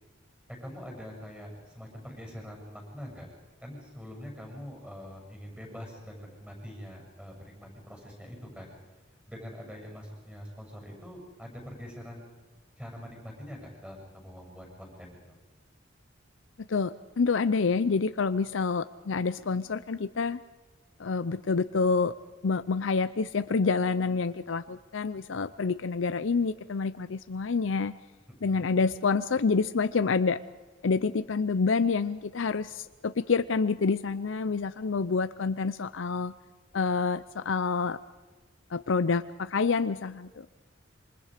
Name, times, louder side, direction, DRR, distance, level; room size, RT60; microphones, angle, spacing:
voice 1, 0.5-3.3 3.6-8.8 9.3-12.3 12.8-15.3 28.4-28.7, equal, 5° right, -1 dB, 7.2 m, -44 dB
voice 2, 16.7-20.4 21.0-22.1 22.4-27.9 28.4-30.4 30.8-36.3 36.7-38.0 38.7-40.5, left 4 dB, 80° left, 12 dB, 0.6 m, -27 dB
27.0 x 25.0 x 5.1 m, 1.2 s
head